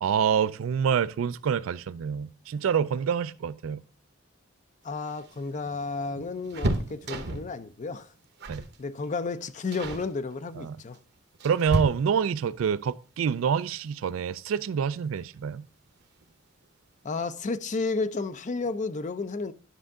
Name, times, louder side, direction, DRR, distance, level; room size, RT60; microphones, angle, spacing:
voice 1, 0.0-3.8 8.5-8.6 10.6-10.8 11.4-15.6, right 7 dB, 70° right, 0.3 m, -27 dB
voice 2, 4.8-8.1 8.8-11.0 17.0-19.5, left 3 dB, 35° left, 0.5 m, -32 dB
sound 1, 4.9-7.6 8.4-8.8 9.0-9.3 9.7-10.1 10.9-12.4 14.1-14.2 14.6-14.7 15.9-16.3 16.6-16.7 17.0-17.2, right 1 dB, 55° right, 0.8 m, -33 dB
10.0 x 5.4 x 3.6 m
head